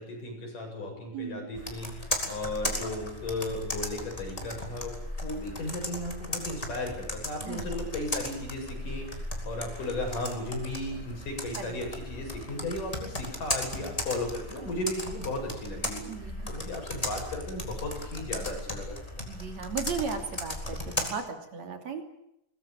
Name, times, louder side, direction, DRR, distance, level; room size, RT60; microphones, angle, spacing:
voice 1, 0.0-4.9 5.2-16.0 16.5-19.0, left 1 dB, 70° left, 2 dB, 9.3 m, -35 dB
voice 2, 1.1-1.5 7.4-7.7 11.6-11.7 16.0-16.5 19.3-22.0, right 6 dB, 55° right, 5 dB, 4.1 m, -36 dB
Computer keyboard, 1.6-21.1, left 1 dB, 10° left, 3.9 m, -36 dB
22.5 x 21.0 x 9.2 m, 0.80 s
omnidirectional pair, 3.8 m